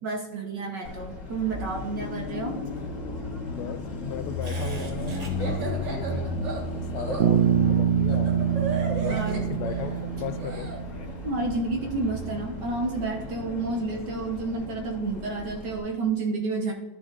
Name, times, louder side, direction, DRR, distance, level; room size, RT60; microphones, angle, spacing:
voice 1, 0.0-2.5 9.0-9.5 11.2-16.7, right 3 dB, 65° right, 1 dB, 1.6 m, -30 dB
Car passing by, 0.8-15.8, left 2 dB, 45° left, 1.5 m, -34 dB
voice 2, 3.4-6.3 6.9-8.4 8.9-10.7, left 9 dB, 70° left, 12 dB, 1.0 m, -37 dB
Laughter, 4.4-10.8, right 4 dB, 40° right, 1.6 m, -35 dB
Bass guitar, 7.2-11.3, right 9 dB, 80° right, 1.3 m, -25 dB
12.5 x 6.9 x 2.5 m, 1.2 s
omnidirectional pair, 2.1 m